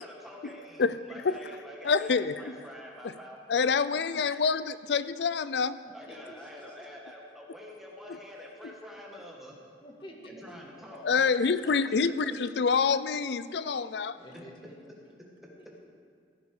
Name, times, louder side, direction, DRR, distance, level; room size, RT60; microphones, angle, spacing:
voice 1, 0.0-0.8 1.1-3.7 4.0-4.3 5.9-9.6 10.2-11.1 11.5-12.3 14.3-14.4 15.4-15.5, equal, ahead, -3 dB, 1.9 m, -47 dB
voice 2, 1.8-2.5 3.0-3.1 3.5-5.8 11.0-14.2, left 5 dB, 65° left, 15 dB, 0.5 m, -27 dB
voice 3, 6.1-6.8 9.8-10.3 14.1-15.1 15.6-15.7, equal, 25° left, -1 dB, 1.9 m, -50 dB
16.0 x 9.7 x 5.0 m, 2.3 s
head